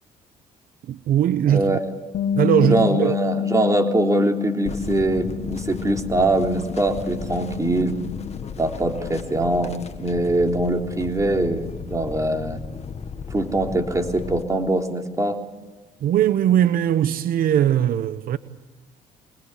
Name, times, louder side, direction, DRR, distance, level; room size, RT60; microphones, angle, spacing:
voice 1, 0.8-1.8 2.3-3.2 16.0-18.4, right 10 dB, 75° right, 0.9 m, -20 dB
voice 2, 1.5-1.8 2.6-8.0 8.6-9.7 10.0-12.6 13.3-15.4, right 2 dB, 20° right, 3.5 m, -22 dB
Bass guitar, 2.1-8.4, left 9 dB, 80° left, 1.4 m, -28 dB
sound 1, 4.7-14.4, left 5 dB, 45° left, 1.8 m, -35 dB
24.5 x 20.5 x 8.1 m
cardioid pair, 80°, 15 cm